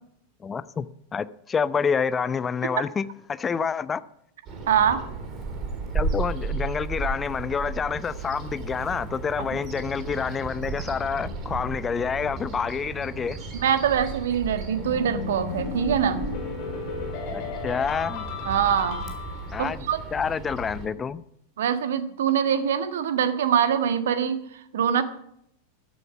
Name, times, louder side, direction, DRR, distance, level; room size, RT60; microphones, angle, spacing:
voice 1, 0.4-0.9 1.1-4.0 5.9-13.4 17.3-18.3 19.5-19.9 20.1-21.2, left 6 dB, 20° left, 0.7 m, -28 dB
Bird vocalization bird call bird song, 4.5-20.9, right 3 dB, 30° right, 3.4 m, -34 dB
voice 2, 4.7-5.0 13.5-16.2 18.4-19.1 19.6-20.0 21.6-25.0, right 8 dB, 60° right, 1.4 m, -24 dB
sound 1, 14.8-19.7, left 5 dB, 45° left, 5.5 m, -34 dB
15.0 x 12.5 x 6.0 m
figure-of-eight pair, 90°, 0 cm